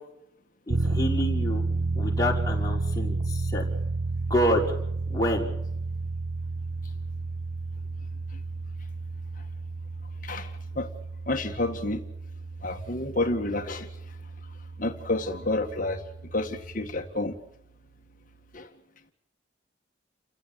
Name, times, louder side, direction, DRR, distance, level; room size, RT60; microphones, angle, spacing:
voice 1, 0.7-1.6 2.0-3.6 4.3-4.6 5.1-5.5, equal, 20° left, -1 dB, 5.5 m, -27 dB
sound 1, 0.7-17.0, right 3 dB, 85° right, 1.0 m, -32 dB
voice 2, 10.2-10.9 11.3-12.0 12.6-13.9 14.8-16.0 16.3-17.3 18.5-18.7, left 2 dB, 45° left, 4 dB, 1.9 m, -29 dB
29.5 x 16.0 x 9.0 m, 0.80 s
head